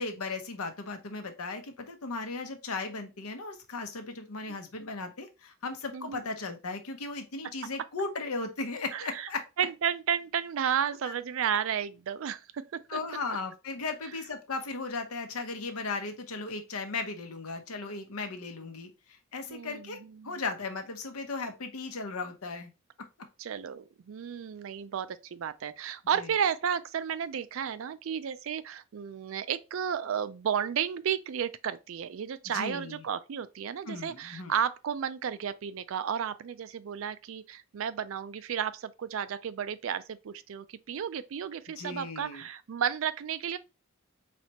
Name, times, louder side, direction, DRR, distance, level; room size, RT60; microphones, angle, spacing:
voice 1, 0.0-9.5 11.1-11.2 12.9-18.9 19.3-20.0 20.2-22.7 26.1-26.3 32.5-33.1 33.9-34.5 41.8-42.4, left 3 dB, 90° left, 0.8 m, -36 dB
voice 2, 5.9-6.2 8.9-9.3 9.6-13.0 19.5-20.4 23.4-43.6, right 8 dB, 65° right, 0.4 m, -33 dB
4.2 x 3.2 x 2.9 m
head